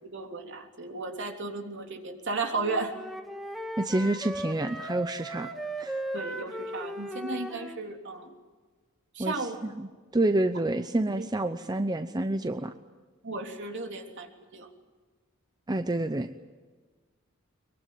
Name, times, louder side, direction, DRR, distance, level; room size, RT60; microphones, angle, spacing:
voice 1, 0.0-2.9 6.1-8.3 9.1-9.6 11.1-11.3 13.2-14.7, right 3 dB, 60° right, 3 dB, 3.2 m, -34 dB
Wind instrument woodwind instrument, 2.5-7.8, right 1 dB, ahead, 1.9 m, -37 dB
voice 2, 3.8-5.5 5.8-6.0 9.2-12.7 15.7-16.3, right 2 dB, 20° right, 9 dB, 0.7 m, -28 dB
22.5 x 22.5 x 9.4 m, 1.4 s
head